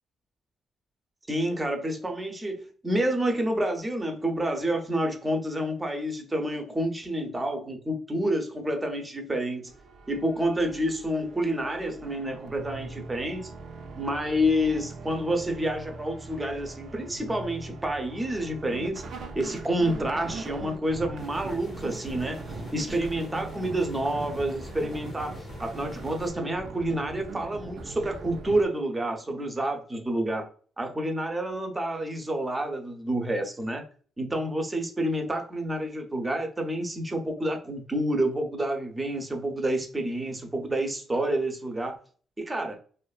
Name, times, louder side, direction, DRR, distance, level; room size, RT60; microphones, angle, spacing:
voice 1, 1.3-9.7 10.1-13.5 14.0-19.0 19.3-22.4 22.7-30.4 30.8-33.8 34.2-41.9 42.4-42.8, right 1 dB, 20° right, 4 dB, 0.6 m, -29 dB
sound 1, 9.7-28.7, right 3 dB, 65° right, 0.4 m, -41 dB
sound 2, 21.2-26.3, left 3 dB, 40° left, 0.5 m, -46 dB
2.5 x 2.3 x 2.3 m, 0.43 s
cardioid pair, 90°, 0 cm